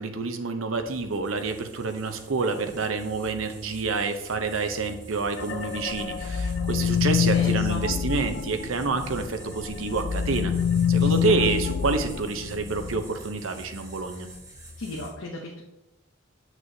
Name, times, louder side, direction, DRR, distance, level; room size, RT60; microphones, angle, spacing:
voice 1, 0.0-10.5 10.9-14.3, right 4 dB, 80° right, 7 dB, 0.7 m, -28 dB
sound 1, 0.7-15.1, right 1 dB, 15° right, 1.9 m, -46 dB
sound 2, 5.4-9.3 9.6-13.0, left 8 dB, 55° left, 0.4 m, -26 dB
voice 2, 7.3-7.8 11.0-11.4 14.8-15.6, left 2 dB, 80° left, -1 dB, 0.8 m, -36 dB
7.6 x 6.0 x 2.8 m, 0.96 s
head